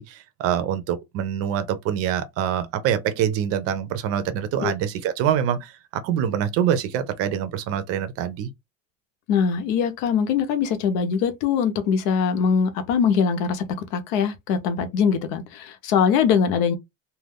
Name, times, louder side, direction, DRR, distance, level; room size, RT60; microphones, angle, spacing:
voice 1, 0.0-8.5, right 9 dB, 45° right, 0.5 m, -25 dB
voice 2, 9.3-13.6 13.9-16.7, left 6 dB, 70° left, 0.8 m, -22 dB
2.5 x 2.2 x 3.4 m
cardioid pair, 160°, 33 cm